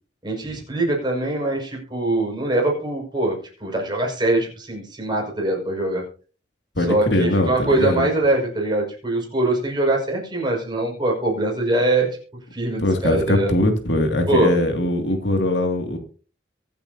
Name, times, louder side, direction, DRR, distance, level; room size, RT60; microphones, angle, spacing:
voice 1, 0.2-6.0 6.9-12.1 12.5-13.5 14.3-14.6, right 2 dB, 25° right, 0 dB, 5.8 m, -22 dB
voice 2, 6.8-8.1 12.8-16.0, left 1 dB, 75° left, 5 dB, 2.5 m, -21 dB
23.0 x 8.8 x 2.8 m, 0.38 s
head